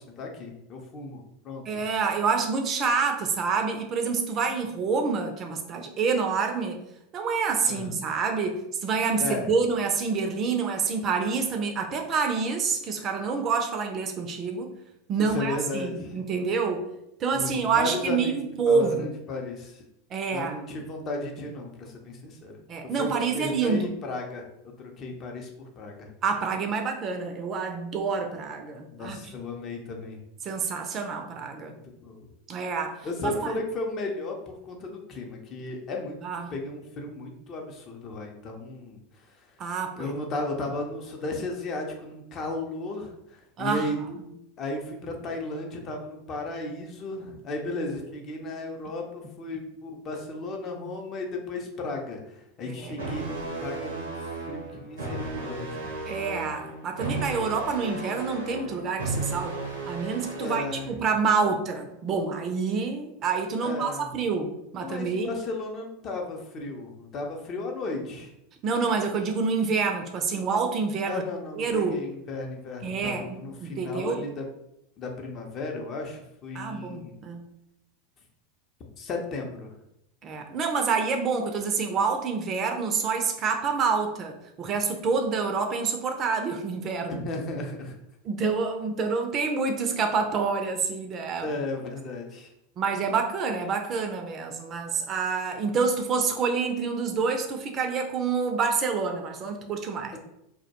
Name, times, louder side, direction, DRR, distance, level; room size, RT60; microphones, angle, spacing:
voice 1, 0.0-1.8 7.6-7.9 9.2-9.5 15.3-16.2 17.3-19.8 20.3-22.6 23.0-24.5 24.8-25.5 25.8-26.1 28.9-30.2 32.0-32.3 33.0-36.2 36.5-39.0 40.0-44.3 44.6-54.1 54.5-55.9 60.4-61.0 63.6-64.1 64.8-68.3 71.1-74.5 75.0-77.2 79.0-79.7 87.1-88.0 91.4-92.5 100.1-100.2, left 2 dB, 40° left, 2 dB, 0.5 m, -35 dB
voice 2, 1.7-6.8 7.1-14.7 15.1-16.9 17.2-19.1 20.1-20.6 22.7-23.9 26.2-29.2 30.4-31.8 32.5-33.5 36.2-36.5 39.6-40.2 43.6-43.9 52.6-52.9 56.1-59.6 59.9-65.3 68.6-71.2 71.6-72.0 72.8-74.2 76.5-77.4 80.2-87.2 88.2-91.5 92.8-100.2, right 5 dB, 40° right, 5 dB, 0.4 m, -27 dB
sound 1, 53.0-60.9, right 2 dB, 85° right, 0.6 m, -34 dB
2.2 x 2.1 x 2.8 m, 0.82 s
hypercardioid pair, 90°, 0 cm